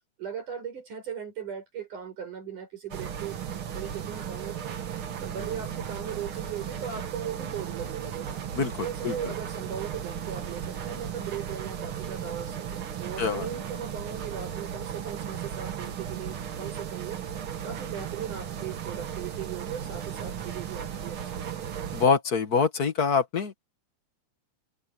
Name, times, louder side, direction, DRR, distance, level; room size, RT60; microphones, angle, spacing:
voice 1, 0.2-3.4 3.7-4.8 5.2-8.4 8.8-17.2 17.6-21.8, right 8 dB, 70° right, 8.3 m, -38 dB
sound 1, 2.9-22.1, right 9 dB, 50° right, 1.8 m, -36 dB
voice 2, 8.5-9.3 13.2-13.5 21.9-23.6, left 5 dB, 40° left, 1.5 m, -25 dB
omnidirectional pair, 3.7 m